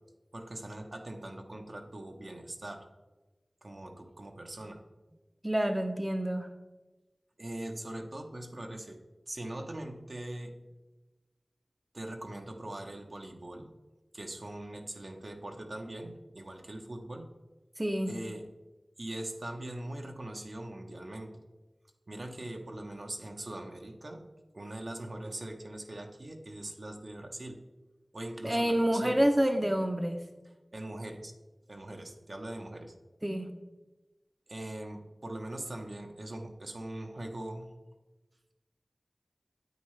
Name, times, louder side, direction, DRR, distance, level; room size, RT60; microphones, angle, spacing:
voice 1, 0.3-2.8 3.6-4.8 7.4-9.0 9.3-10.5 11.9-13.7 14.1-17.3 18.1-18.5 19.0-21.4 22.1-24.3 24.5-27.6 28.1-29.2 30.7-31.3 31.7-32.9 34.5-37.7, right 1 dB, 60° right, 2 dB, 1.0 m, -41 dB
voice 2, 5.4-6.5 17.8-18.1 28.4-30.2 33.2-33.6, equal, 20° right, 5 dB, 0.7 m, -28 dB
9.3 x 8.8 x 3.3 m, 1.2 s
wide cardioid pair, 55°, 0 cm